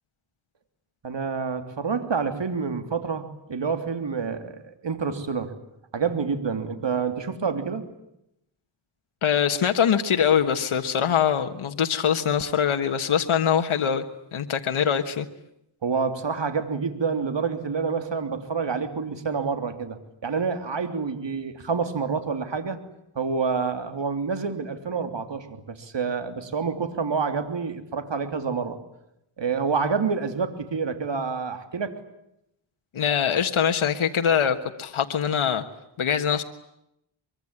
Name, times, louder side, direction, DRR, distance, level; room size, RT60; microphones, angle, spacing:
voice 1, 1.0-5.5 5.9-7.9 15.8-22.8 23.1-28.8 29.4-31.9, right 5 dB, 65° right, 8 dB, 3.2 m, -28 dB
voice 2, 9.2-14.0 14.3-15.3 32.9-35.6 36.0-36.4, left 8 dB, 85° left, 6 dB, 1.5 m, -23 dB
24.0 x 23.5 x 9.9 m, 0.82 s
cardioid pair, 65°, 48 cm